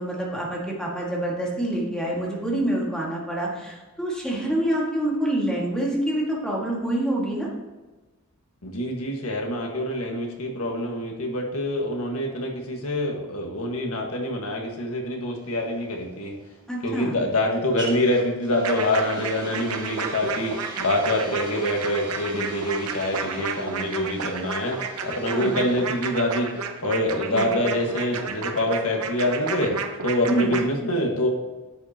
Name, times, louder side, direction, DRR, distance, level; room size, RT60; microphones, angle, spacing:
voice 1, 0.0-7.5 16.7-17.2 25.3-25.6 27.3-27.5 30.3-30.5, right 1 dB, 5° left, -4 dB, 1.9 m, -26 dB
voice 2, 8.6-16.4 16.8-26.5 26.8-29.7 30.0-31.3, left 1 dB, 80° left, 1 dB, 1.6 m, -26 dB
sound 1, 15.4-29.2, right 1 dB, 20° right, 1.4 m, -41 dB
sound 2, 18.6-30.6, right 5 dB, 85° right, 0.8 m, -31 dB
10.5 x 7.4 x 2.9 m, 1.2 s
head